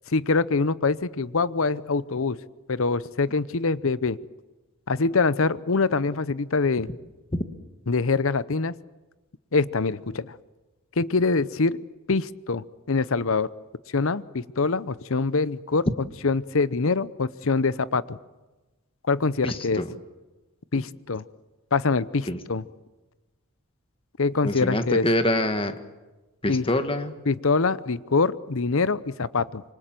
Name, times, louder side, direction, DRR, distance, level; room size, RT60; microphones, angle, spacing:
voice 1, 0.1-2.4 2.7-4.2 4.9-6.9 7.9-8.7 9.5-10.3 11.0-11.8 12.1-13.5 13.9-15.9 16.2-18.2 19.1-19.8 20.7-21.2 21.7-22.6 24.2-25.1 26.5-26.7 27.3-29.6, left 4 dB, 65° left, 17 dB, 0.8 m, -24 dB
voice 2, 19.4-19.9 20.7-20.8 22.3-22.4 24.4-25.7 26.4-27.1, left 1 dB, 25° left, 8 dB, 1.7 m, -25 dB
26.5 x 25.0 x 7.7 m, 1.1 s
head